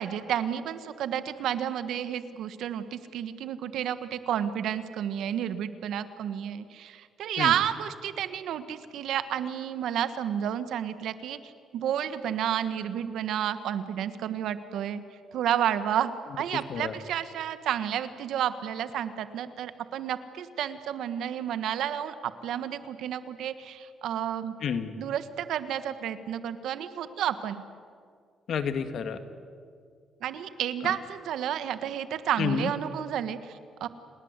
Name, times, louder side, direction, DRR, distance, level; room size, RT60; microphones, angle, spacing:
voice 1, 0.0-11.4 11.7-15.0 15.3-24.5 25.0-27.6 30.2-33.9, right 10 dB, 80° right, 12 dB, 1.4 m, -31 dB
voice 2, 24.6-24.9 28.5-29.2 30.8-31.0 32.4-32.7, left 7 dB, 65° left, 9 dB, 1.9 m, -29 dB
29.0 x 19.5 x 8.2 m, 2.2 s
cardioid pair, 90°, 0 cm